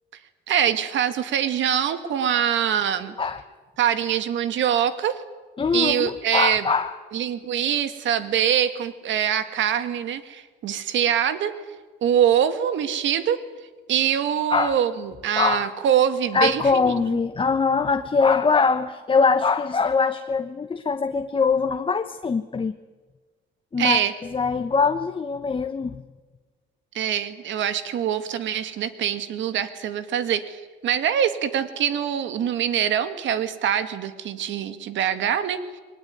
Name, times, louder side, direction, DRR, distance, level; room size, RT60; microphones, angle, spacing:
voice 1, 0.5-3.1 3.8-5.2 5.7-6.7 7.1-11.5 12.0-13.4 13.9-16.9 23.8-24.1 26.9-35.8, right 9 dB, 70° right, 11 dB, 2.0 m, -24 dB
voice 2, 5.6-6.9 14.5-14.8 15.4-15.7 16.3-22.7 23.7-24.0 24.3-25.9, left 5 dB, 25° left, 8 dB, 1.0 m, -22 dB
22.0 x 19.5 x 9.3 m, 1.3 s
cardioid pair, 100°, 20 cm